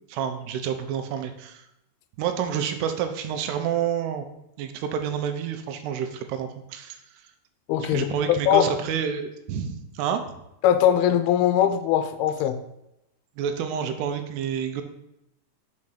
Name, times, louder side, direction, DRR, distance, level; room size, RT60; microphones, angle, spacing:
voice 1, 0.0-1.6 2.2-4.3 4.6-7.0 7.8-10.2 13.4-14.8, right 8 dB, 90° right, 7 dB, 2.8 m, -29 dB
voice 2, 7.7-8.7 10.6-12.6, left 10 dB, 80° left, 9 dB, 2.4 m, -21 dB
6.4 x 4.7 x 5.7 m, 0.84 s
omnidirectional pair, 4.7 m